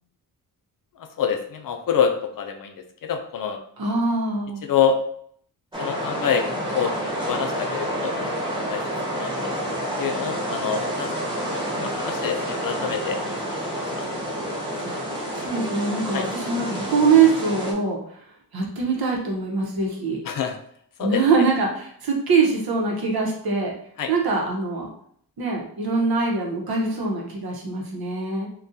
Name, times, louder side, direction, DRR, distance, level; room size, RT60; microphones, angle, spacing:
voice 1, 1.0-3.6 4.6-5.0 5.8-6.4 6.7-6.9 7.3-8.3 8.7-8.8 9.1-9.5 10.0-11.1 11.8-13.3 13.7-13.8 16.1-16.3 20.3-20.6 21.0-21.2 24.0-24.1, left 7 dB, 55° left, 5 dB, 0.4 m, -26 dB
voice 2, 3.8-4.6 14.8-15.0 15.4-18.0 18.5-20.2 21.0-23.7 24.1-24.9 25.4-28.5, right 4 dB, 65° right, -1 dB, 0.9 m, -23 dB
sound 1, 5.7-17.7, equal, 10° right, 0.6 m, -29 dB
3.8 x 2.3 x 2.6 m, 0.64 s
wide cardioid pair, 170°, 39 cm